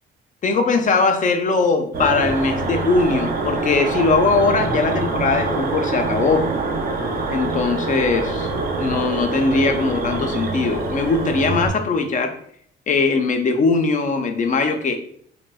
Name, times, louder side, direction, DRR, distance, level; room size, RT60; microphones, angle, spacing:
voice 1, 0.4-6.5 7.3-8.5 8.8-12.4 12.9-15.0, left 4 dB, 40° left, 5 dB, 0.4 m, -20 dB
sound 1, 1.9-11.7, right 3 dB, 45° right, 0.5 m, -25 dB
3.1 x 2.0 x 2.3 m, 0.62 s
cardioid pair, 90°, 20 cm